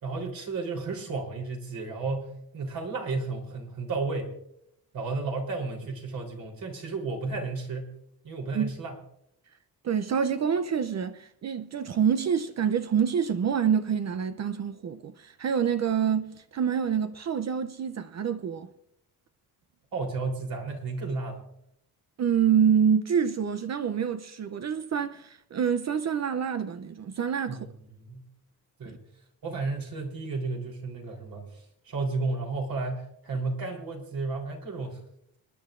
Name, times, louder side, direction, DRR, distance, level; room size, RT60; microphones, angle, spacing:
voice 1, 0.0-4.3 4.9-7.9 8.2-9.0 19.9-21.5 27.5-28.3 28.8-29.1 29.4-35.0, right 3 dB, 60° right, 3.6 m, -33 dB
voice 2, 9.8-18.7 22.2-27.6 28.9-29.0, right 7 dB, 45° right, 0.6 m, -27 dB
28.5 x 10.5 x 2.5 m
cardioid pair, 145°, 39 cm